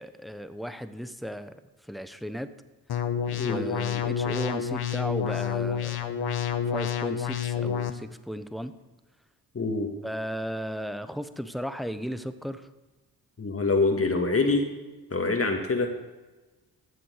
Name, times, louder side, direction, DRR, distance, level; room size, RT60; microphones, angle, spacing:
voice 1, 0.0-1.6 1.9-2.5 3.3-6.0 6.7-8.7 10.0-12.6, equal, ahead, 11 dB, 0.9 m, -35 dB
sound 1, 2.9-7.9, left 8 dB, 65° left, 1.1 m, -29 dB
voice 2, 9.5-9.9 13.4-14.6 15.1-15.9, left 3 dB, 35° left, 3 dB, 2.0 m, -25 dB
13.0 x 7.7 x 6.5 m, 1.2 s
supercardioid pair, 55°, 42 cm